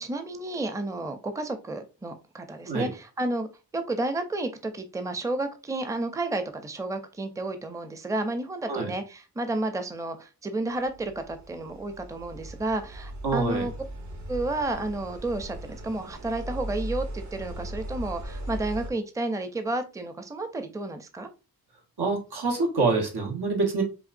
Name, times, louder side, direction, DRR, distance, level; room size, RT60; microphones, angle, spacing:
voice 1, 0.0-3.5 3.7-13.7 14.3-21.3, right 2 dB, 10° right, 8 dB, 0.5 m, -31 dB
sound 1, 10.8-18.9, right 1 dB, 50° right, 0.8 m, -38 dB
voice 2, 13.2-13.7 22.0-23.8, right 3 dB, 90° right, 1 dB, 1.2 m, -26 dB
5.5 x 2.4 x 2.5 m, 0.30 s
wide cardioid pair, 80°, 38 cm